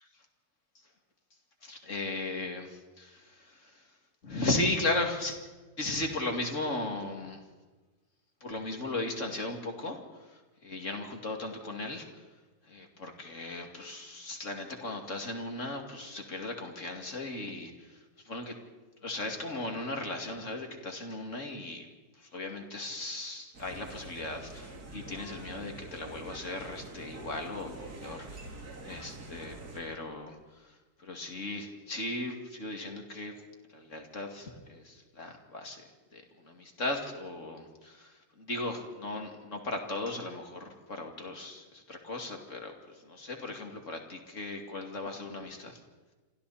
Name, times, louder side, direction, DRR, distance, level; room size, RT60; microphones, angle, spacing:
voice 1, 1.6-3.8 4.2-5.4 5.8-7.4 8.4-12.2 12.6-18.6 19.0-21.8 22.2-33.3 33.7-35.8 36.1-45.8, left 2 dB, 35° left, 3 dB, 2.8 m, -37 dB
sound 1, 23.5-29.8, right 2 dB, 45° right, 3.3 m, -45 dB
28.5 x 26.0 x 4.3 m, 1.3 s
omnidirectional pair, 2.4 m